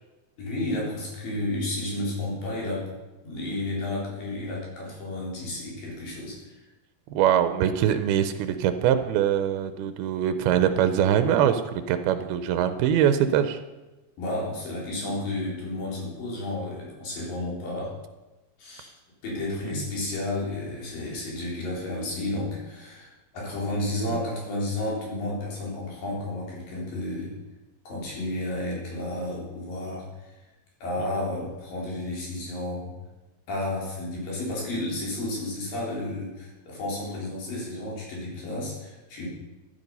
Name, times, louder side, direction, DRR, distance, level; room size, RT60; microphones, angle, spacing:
voice 1, 0.4-2.9 3.2-6.6 14.2-17.9 18.6-18.9 19.2-27.4 27.9-30.3 30.8-32.9 33.5-39.3, left 1 dB, 65° left, -4 dB, 5.5 m, -32 dB
voice 2, 7.1-11.6 11.9-13.6 19.4-19.8 24.1-24.2, right 9 dB, 85° right, 10 dB, 2.6 m, -23 dB
13.5 x 10.5 x 5.4 m, 1.1 s
omnidirectional pair, 4.4 m